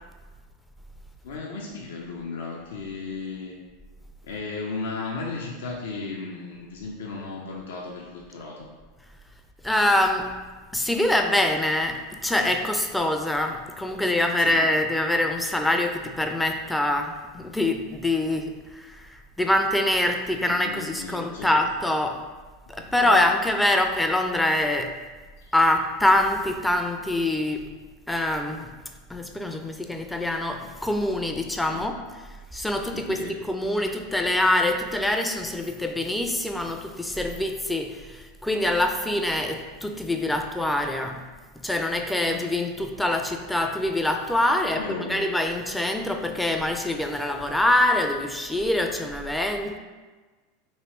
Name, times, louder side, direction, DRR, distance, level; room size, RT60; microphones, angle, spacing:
voice 1, 1.2-3.6 4.2-8.7 14.4-14.6 20.4-21.5 22.8-23.2 31.7-31.9 32.9-33.4 42.2-42.4 44.7-45.2, left 4 dB, 75° left, -2 dB, 0.4 m, -35 dB
voice 2, 9.6-10.3 10.7-22.2 22.7-25.0 25.5-27.6 28.1-28.7 29.1-32.0 32.5-33.2 33.5-41.2 41.6-49.8, left 1 dB, 5° left, 4 dB, 0.3 m, -24 dB
3.1 x 2.8 x 3.0 m, 1.3 s
hypercardioid pair, 90°, 0 cm